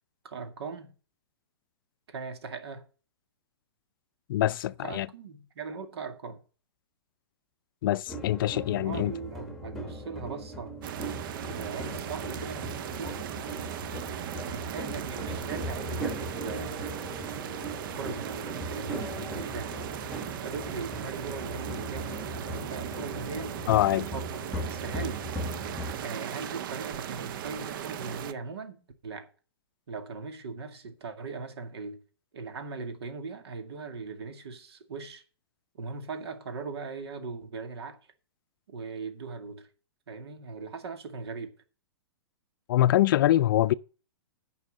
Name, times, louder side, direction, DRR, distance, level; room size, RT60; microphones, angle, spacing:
voice 1, 0.2-0.9 2.1-2.8 4.8-6.4 8.7-10.7 11.4-13.2 14.5-17.0 17.8-19.8 20.3-22.2 22.5-23.6 24.1-24.4 24.7-25.2 26.0-29.3 29.9-32.0 32.3-35.2 35.7-38.0 38.7-39.7 40.1-41.5, right 4 dB, 75° right, 2.1 m, -39 dB
voice 2, 4.3-5.1 7.8-9.1 23.7-24.1 42.7-43.7, left 14 dB, 55° left, 0.4 m, -24 dB
sound 1, 8.1-26.1, right 1 dB, ahead, 1.5 m, -39 dB
sound 2, 10.8-28.3, right 10 dB, 55° right, 0.7 m, -38 dB
9.4 x 5.6 x 7.4 m
hypercardioid pair, 145°, 13 cm